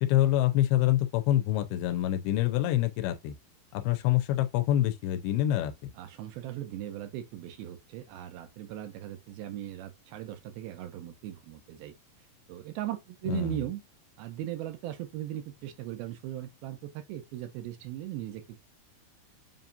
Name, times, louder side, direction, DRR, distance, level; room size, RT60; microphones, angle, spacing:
voice 1, 0.0-3.3 3.7-5.9 13.3-13.6, left 13 dB, 80° left, 2.5 m, -26 dB
voice 2, 6.0-11.9 12.5-13.8 14.2-18.6, right 12 dB, 80° right, 2.5 m, -38 dB
7.3 x 2.8 x 2.6 m
omnidirectional pair, 4.5 m